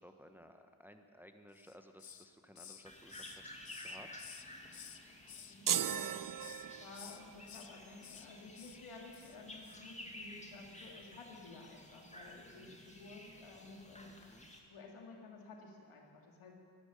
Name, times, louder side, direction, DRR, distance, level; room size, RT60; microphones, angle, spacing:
voice 1, 0.0-3.5 3.8-4.1 12.5-12.8 14.3-14.5, equal, 5° right, 6 dB, 1.3 m, -58 dB
Hiss, 1.5-2.3 2.6-5.0 5.3-6.1 6.4-6.7 6.9-7.7 8.0-8.3 8.5-8.8 9.1-9.4 9.6-9.8, left 8 dB, 45° left, 0.9 m, -53 dB
sound 1, 2.9-14.6, left 1 dB, 15° left, 2.5 m, -53 dB
voice 2, 5.3-6.2 6.8-14.2 14.7-16.5, left 3 dB, 80° left, 0 dB, 2.4 m, -53 dB
sound 2, 5.7-7.2, right 9 dB, 40° right, 0.6 m, -36 dB
12.0 x 11.5 x 9.1 m, 2.2 s
supercardioid pair, 40°, 50 cm